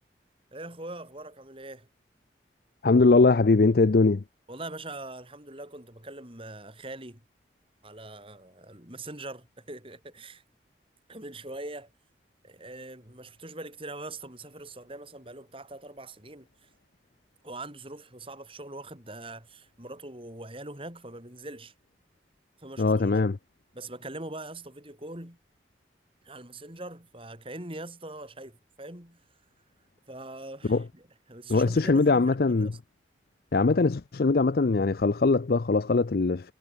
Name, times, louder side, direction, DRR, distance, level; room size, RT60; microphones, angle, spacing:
voice 1, 0.5-1.9 4.5-7.2 7.8-10.4 11.1-11.9 12.4-16.7 17.4-21.7 22.6-23.1 23.7-25.4 26.2-29.2 30.1-32.8, right 2 dB, 30° right, 7.3 m, -42 dB
voice 2, 2.8-4.2 22.8-23.4 30.7-30.8 31.5-32.7 33.5-36.5, left 3 dB, 55° left, 0.5 m, -21 dB
head